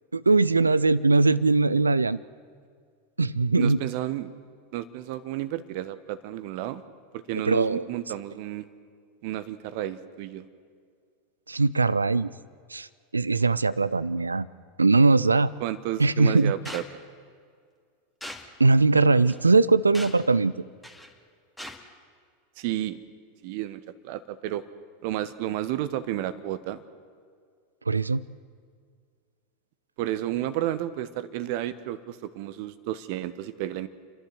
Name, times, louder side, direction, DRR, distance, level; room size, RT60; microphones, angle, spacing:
voice 1, 0.1-2.2 3.2-3.8 7.4-7.9 11.5-12.3 12.7-12.9 13.1-14.5 14.8-15.5 16.0-16.5 18.6-20.5 27.9-28.2, right 3 dB, 85° right, 19 dB, 0.5 m, -21 dB
voice 2, 3.6-4.3 4.7-6.8 7.3-8.7 9.2-10.4 15.6-16.8 22.6-23.0 23.4-24.6 25.0-26.8 30.0-33.9, right 13 dB, 50° right, 13 dB, 1.1 m, -31 dB
sound 1, 16.6-16.9 18.2-18.5 19.2-19.4 19.9-20.3 20.8-21.1 21.6-21.8, left 1 dB, 5° left, 2.1 m, -39 dB
30.0 x 11.5 x 7.9 m, 2.1 s
figure-of-eight pair, 85°, 0 cm